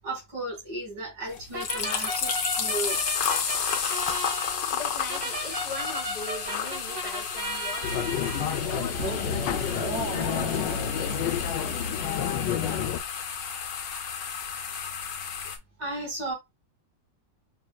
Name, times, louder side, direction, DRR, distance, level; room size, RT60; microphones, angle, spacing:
voice 1, 0.0-3.2 15.8-16.3, right 2 dB, 90° right, 2.9 m, -35 dB
sound 1, 1.3-15.6, left 7 dB, 60° left, 1.1 m, -32 dB
sound 2, 1.5-11.9, right 1 dB, 65° right, 2.4 m, -36 dB
voice 2, 4.7-13.0, left 3 dB, 35° left, 0.8 m, -41 dB
sound 3, 7.8-13.0, left 9 dB, 80° left, 1.2 m, -30 dB
6.0 x 2.6 x 2.2 m
omnidirectional pair, 2.0 m